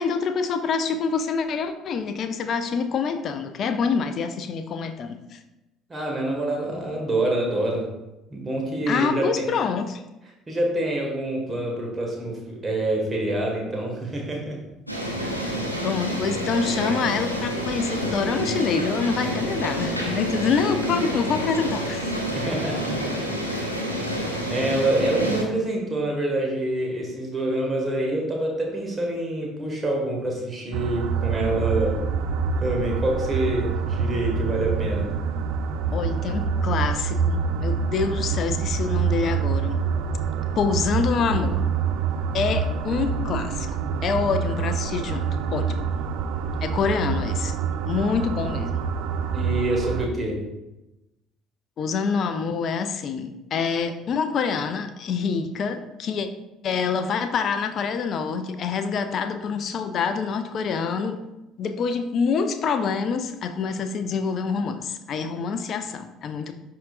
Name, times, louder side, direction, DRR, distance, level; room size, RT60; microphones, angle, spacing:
voice 1, 0.0-5.4 8.9-10.0 15.8-22.2 35.9-39.8 40.6-41.6 42.3-43.7 44.0-45.7 46.6-47.5 47.9-48.8 51.8-56.3 56.6-61.2 61.6-66.5, left 5 dB, 45° left, 9 dB, 0.5 m, -26 dB
voice 2, 5.9-7.9 8.3-9.5 10.5-14.6 22.3-23.2 24.5-32.0 32.6-35.1 49.3-50.4, right 1 dB, 25° right, 0 dB, 1.9 m, -26 dB
sound 1, 14.9-25.4, equal, 90° left, 0.7 m, -28 dB
sound 2, 30.7-50.1, right 6 dB, 60° right, 0.4 m, -26 dB
11.0 x 3.8 x 2.5 m, 0.98 s
figure-of-eight pair, 55°, 0 cm